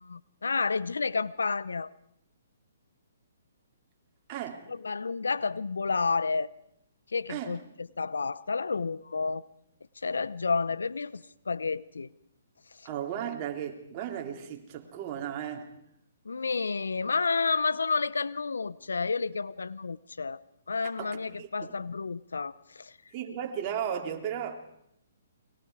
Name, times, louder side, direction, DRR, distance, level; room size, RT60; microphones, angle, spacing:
voice 1, 0.0-1.9 4.7-6.5 7.1-9.4 10.0-12.1 16.2-20.4 20.7-22.9, left 4 dB, 85° left, 0.8 m, -30 dB
voice 2, 4.3-4.7 7.3-7.6 12.8-15.7 21.0-21.7 23.1-24.5, right 9 dB, 35° right, 3.5 m, -35 dB
29.5 x 22.5 x 4.9 m
hypercardioid pair, 135°, 0 cm